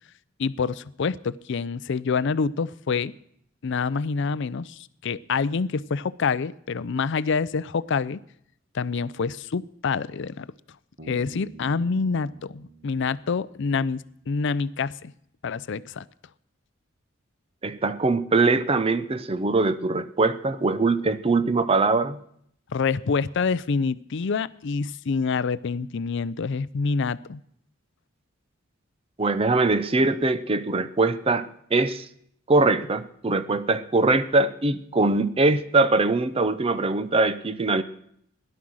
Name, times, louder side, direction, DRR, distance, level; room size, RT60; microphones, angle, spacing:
voice 1, 0.4-3.1 3.6-8.2 8.7-10.5 11.1-15.1 15.4-16.0 22.7-27.4, left 5 dB, 65° left, 18 dB, 0.5 m, -27 dB
Bass guitar, 11.0-14.5, right 4 dB, 45° right, 1.8 m, -48 dB
voice 2, 17.6-22.2 29.2-32.1 32.5-37.8, right 3 dB, 30° right, 13 dB, 0.6 m, -22 dB
17.0 x 11.0 x 6.3 m, 0.70 s
head